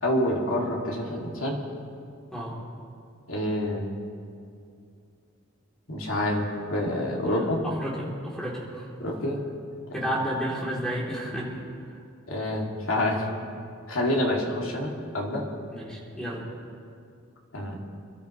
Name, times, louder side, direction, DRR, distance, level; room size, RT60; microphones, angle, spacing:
voice 1, 0.0-1.6 3.3-3.9 5.9-7.6 9.0-9.4 9.9-10.1 12.3-13.3 13.9-15.5 17.5-17.8, left 1 dB, 80° left, -2 dB, 2.6 m, -27 dB
voice 2, 7.2-8.9 9.9-11.5 15.7-16.4, equal, 5° left, -5 dB, 3.3 m, -32 dB
28.0 x 13.0 x 3.2 m, 2.4 s
head